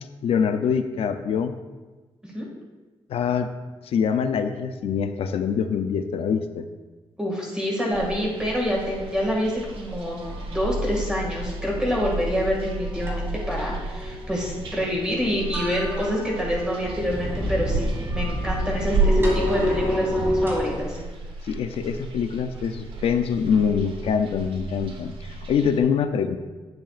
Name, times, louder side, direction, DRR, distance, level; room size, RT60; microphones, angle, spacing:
voice 1, 0.2-1.5 3.1-3.5 3.8-6.7 21.4-26.4, left 7 dB, 85° left, 9 dB, 0.4 m, -24 dB
voice 2, 7.2-21.0, equal, 10° right, -3 dB, 1.9 m, -27 dB
sound 1, 7.9-25.8, right 3 dB, 65° right, 1.0 m, -32 dB
sound 2, 10.2-20.8, equal, 25° right, 2.1 m, -29 dB
10.5 x 7.7 x 2.4 m, 1.3 s
wide cardioid pair, 150°, 10 cm